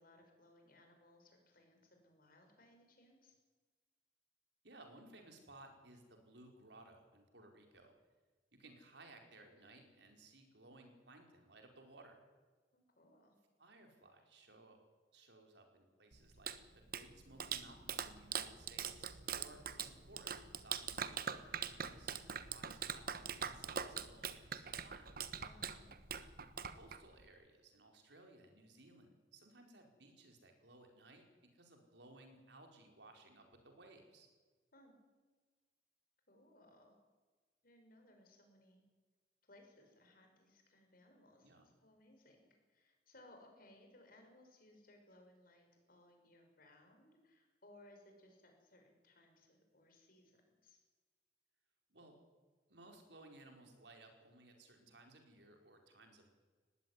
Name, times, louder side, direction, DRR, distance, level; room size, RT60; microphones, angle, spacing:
voice 1, 0.0-3.3 12.7-13.3 25.4-25.9 34.7-34.9 36.3-36.9 37.6-38.8 39.4-41.5 41.8-50.8, left 1 dB, 55° left, 4 dB, 6.0 m, -64 dB
voice 2, 4.6-7.9 8.6-12.2 13.6-14.8 15.1-25.1 26.8-31.3 31.5-34.3 41.4-41.7 51.9-52.1 52.7-56.3, right 2 dB, 75° right, 4 dB, 4.7 m, -60 dB
Clapping, 16.1-27.3, right 7 dB, 55° right, 1.2 m, -43 dB
20.0 x 16.5 x 9.7 m, 1.4 s
head